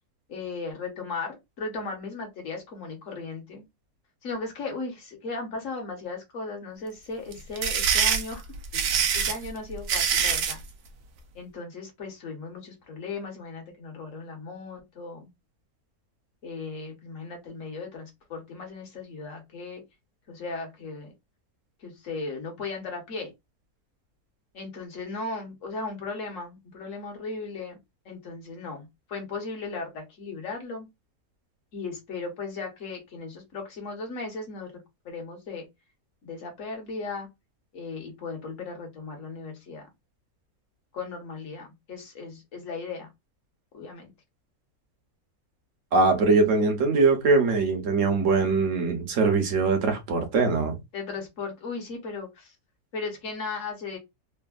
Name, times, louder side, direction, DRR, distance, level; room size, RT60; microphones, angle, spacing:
voice 1, 0.3-3.6 4.2-8.4 8.7-10.6 11.3-15.3 16.4-19.8 20.3-21.1 21.8-23.3 24.5-27.8 28.0-30.9 31.7-34.7 35.0-35.7 36.2-37.3 37.7-39.9 40.9-43.1 43.7-44.1 50.9-52.5 52.9-54.0, left 3 dB, 60° left, 1.3 m, -36 dB
sound 1, 7.3-10.6, right 7 dB, 85° right, 1.1 m, -24 dB
voice 2, 45.9-50.8, right 3 dB, 60° right, 1.1 m, -22 dB
3.3 x 2.1 x 2.3 m
omnidirectional pair, 1.6 m